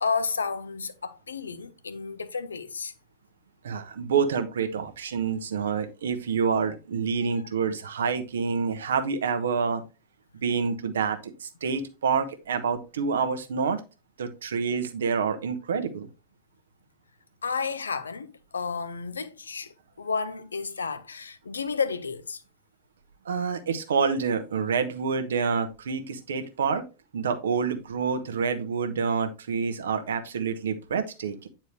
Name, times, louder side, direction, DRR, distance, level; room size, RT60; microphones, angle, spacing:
voice 1, 0.0-2.9 17.4-22.4, left 5 dB, 75° left, 0.7 m, -31 dB
voice 2, 3.6-9.8 10.4-13.8 14.2-16.1 23.2-26.8 27.1-31.5, right 5 dB, 65° right, 1.0 m, -27 dB
9.3 x 4.5 x 3.2 m
figure-of-eight pair, 90°, 0 cm